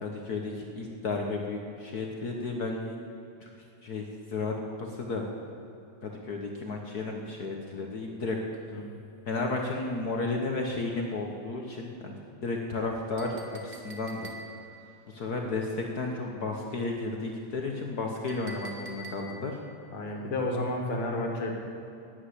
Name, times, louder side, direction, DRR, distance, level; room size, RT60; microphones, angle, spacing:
voice 1, 0.0-3.0 3.4-3.5 3.8-4.5 4.8-5.3 6.0-8.4 9.3-12.2 12.4-13.4 13.6-14.3 15.1-19.6, left 3 dB, 65° left, 1 dB, 0.9 m, -33 dB
Chink clink, 13.2-14.8 18.3-19.6, right 1 dB, 55° right, 0.5 m, -45 dB
voice 2, 19.9-21.5, left 2 dB, 50° left, 1 dB, 2.5 m, -31 dB
12.5 x 9.9 x 8.3 m, 2.7 s
omnidirectional pair, 3.3 m